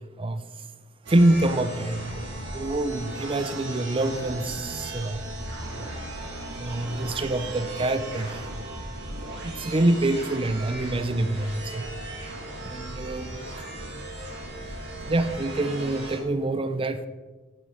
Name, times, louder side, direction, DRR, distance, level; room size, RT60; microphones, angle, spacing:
voice 1, 1.1-5.2 5.8-5.9 6.5-8.5 9.4-11.8 12.6-13.7 15.1-17.1, right 1 dB, 25° right, 11 dB, 0.5 m, -26 dB
sound 1, 1.1-16.2, right 1 dB, 65° right, 2.4 m, -37 dB
9.3 x 7.5 x 4.8 m, 1.2 s
head